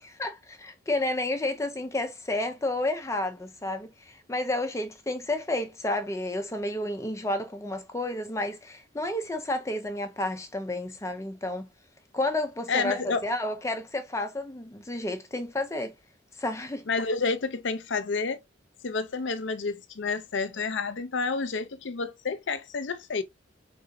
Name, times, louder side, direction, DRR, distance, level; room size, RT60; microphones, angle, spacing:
voice 1, 0.0-11.7 12.1-15.9 16.3-16.9, left 1 dB, 15° left, 0.5 m, -31 dB
voice 2, 12.7-13.3 16.9-18.4 18.8-23.2, left 4 dB, 75° left, 0.6 m, -29 dB
4.9 x 3.6 x 2.6 m
head